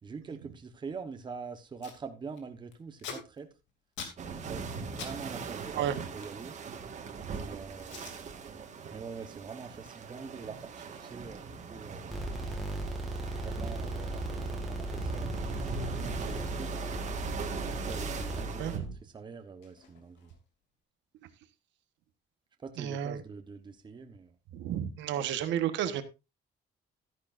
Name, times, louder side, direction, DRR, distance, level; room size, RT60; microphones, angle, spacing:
voice 1, 0.0-3.5 4.4-6.6 7.4-8.0 8.9-12.2 13.4-14.4 14.6-16.9 17.7-20.3 22.6-24.3, right 5 dB, 25° right, 1.1 m, -44 dB
Packing tape duct tape, 1.8-2.0 2.3-5.2 5.4-7.3 7.8-8.2 8.6-8.9 9.2-15.4 15.7-15.8 16.0-18.4 18.7-20.6, left 6 dB, 90° left, 2.8 m, -50 dB
sound 1, 4.2-18.8, right 5 dB, 40° right, 1.6 m, -40 dB
sound 2, 12.1-18.9, right 1 dB, ahead, 1.8 m, -37 dB
voice 2, 22.8-23.2 24.5-26.0, right 10 dB, 85° right, 1.3 m, -31 dB
13.0 x 10.5 x 2.6 m
cardioid pair, 155°, 18 cm